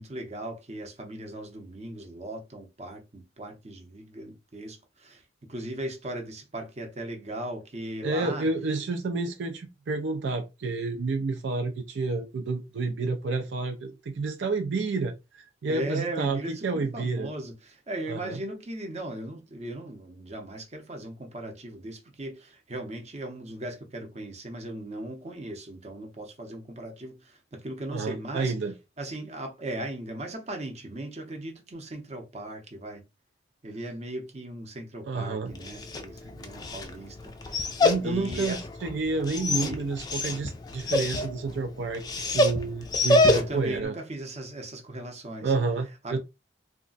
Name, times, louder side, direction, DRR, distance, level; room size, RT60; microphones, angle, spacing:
voice 1, 0.0-8.5 15.7-28.5 29.0-33.0 33.6-37.8 38.0-38.6 39.6-39.8 43.3-45.5 46.0-46.2, right 1 dB, 35° right, 0.7 m, -38 dB
voice 2, 8.0-17.3 18.1-18.4 27.9-28.7 35.1-35.5 37.8-43.9 45.4-46.2, right 3 dB, 75° right, 0.4 m, -30 dB
Dog, 35.5-43.8, left 2 dB, 20° left, 0.3 m, -27 dB
2.4 x 2.2 x 3.8 m
head